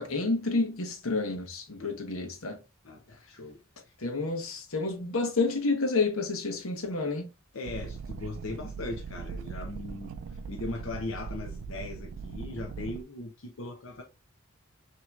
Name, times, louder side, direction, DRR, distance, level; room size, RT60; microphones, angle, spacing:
voice 1, 0.0-2.6 4.0-7.3, left 3 dB, 90° left, 1.1 m, -29 dB
voice 2, 2.8-3.9 7.5-14.0, left 2 dB, 65° left, 0.7 m, -39 dB
sound 1, 7.7-13.0, right 5 dB, 75° right, 0.3 m, -40 dB
5.8 x 3.0 x 2.4 m
head